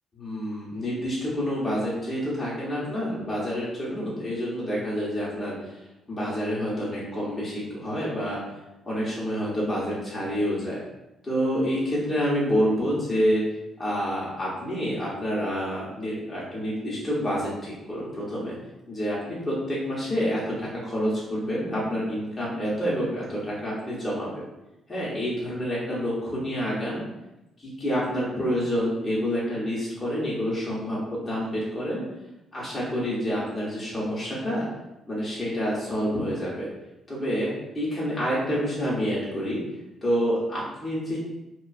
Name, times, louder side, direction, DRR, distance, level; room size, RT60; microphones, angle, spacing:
voice 1, 0.1-8.4 8.8-10.8 11.2-13.4 13.8-18.6 18.9-24.3 24.9-27.0 27.8-31.0 31.3-32.0 32.5-34.7 35.1-36.7 37.1-39.6 40.0-41.2, equal, 30° left, -7 dB, 0.8 m, -28 dB
2.3 x 2.3 x 2.3 m, 0.95 s
cardioid pair, 90°, 0 cm